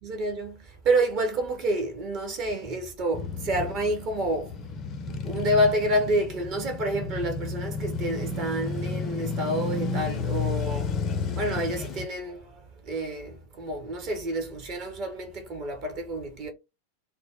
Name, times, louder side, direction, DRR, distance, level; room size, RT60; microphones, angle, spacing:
voice 1, 0.0-4.6 5.2-10.9 11.3-16.5, right 1 dB, 40° right, 0.7 m, -28 dB
Male speech man speaking / Motorcycle / Idling, 3.1-12.1, left 4 dB, 30° left, 0.4 m, -32 dB
2.0 x 2.0 x 3.4 m
figure-of-eight pair, 90°, 0 cm